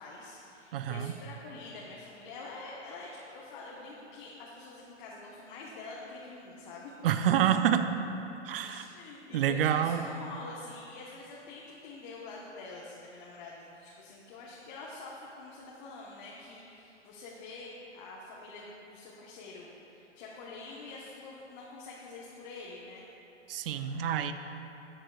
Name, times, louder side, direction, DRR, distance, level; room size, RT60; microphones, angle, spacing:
voice 1, 0.0-6.9 8.6-23.0, left 3 dB, 40° left, -5 dB, 1.2 m, -46 dB
voice 2, 0.7-1.1 7.0-7.9 8.4-8.8 9.3-10.1 23.5-24.3, right 9 dB, 50° right, 9 dB, 0.6 m, -27 dB
13.0 x 8.0 x 2.4 m, 2.9 s
hypercardioid pair, 135°, 36 cm